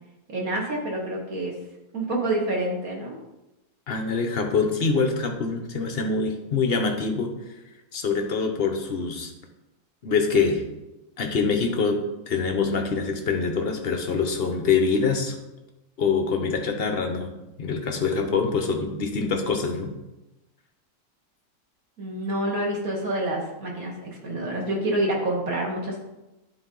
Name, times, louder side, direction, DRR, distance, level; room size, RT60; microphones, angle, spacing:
voice 1, 0.3-1.5 1.9-3.2 22.0-26.0, right 1 dB, 55° right, -2 dB, 1.9 m, -27 dB
voice 2, 3.9-7.3 7.9-9.3 10.0-10.6 11.2-12.0 12.3-15.4 16.0-17.3 17.6-19.9, left 5 dB, 50° left, 4 dB, 0.7 m, -24 dB
11.0 x 4.1 x 3.8 m, 0.99 s
omnidirectional pair, 1.9 m